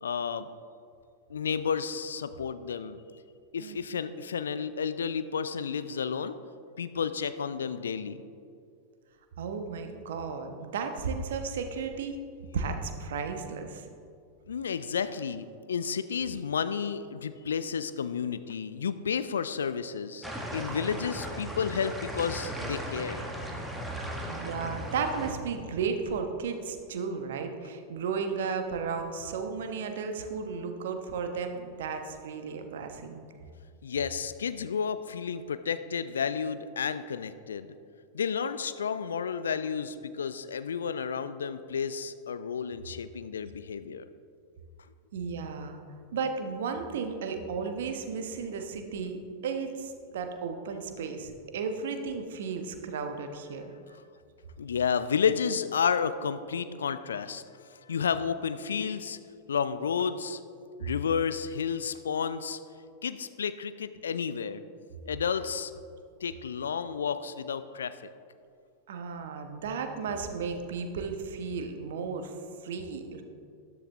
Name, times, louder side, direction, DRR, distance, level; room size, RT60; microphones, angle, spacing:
voice 1, 0.0-0.5 1.3-3.0 3.5-6.4 6.8-8.2 14.5-20.3 20.5-23.2 33.8-37.7 38.1-44.1 53.9-54.0 54.6-57.4 57.7-59.2 59.5-60.4 60.8-62.6 63.0-64.6 65.0-65.7 66.2-68.1, left 6 dB, 70° left, 12 dB, 0.5 m, -31 dB
voice 2, 9.4-12.1 12.5-13.9 24.3-33.2 45.1-45.8 46.1-49.2 49.4-53.6 68.9-72.3 72.6-73.2, right 5 dB, 60° right, 6 dB, 1.2 m, -34 dB
sound 1, 20.2-25.3, equal, 5° right, 1.7 m, -37 dB
13.0 x 12.0 x 3.5 m, 2.3 s
figure-of-eight pair, 90°, 0 cm